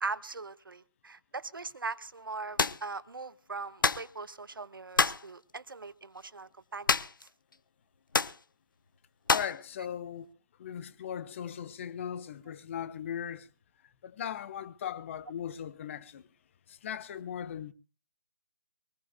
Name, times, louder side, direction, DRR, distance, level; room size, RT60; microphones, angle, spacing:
voice 1, 0.0-7.0, right 4 dB, 75° right, 1.2 m, -40 dB
sound 1, 2.6-2.8 3.8-4.1 5.0-5.3 6.9-7.3 7.5-7.6 8.1-8.4 9.3-9.6, left 4 dB, 70° left, 0.9 m, -27 dB
voice 2, 9.3-10.3 10.6-13.5 14.0-16.3 16.7-17.7, left 9 dB, 35° left, 1.1 m, -38 dB
23.0 x 19.5 x 2.2 m
figure-of-eight pair, 145°, 11 cm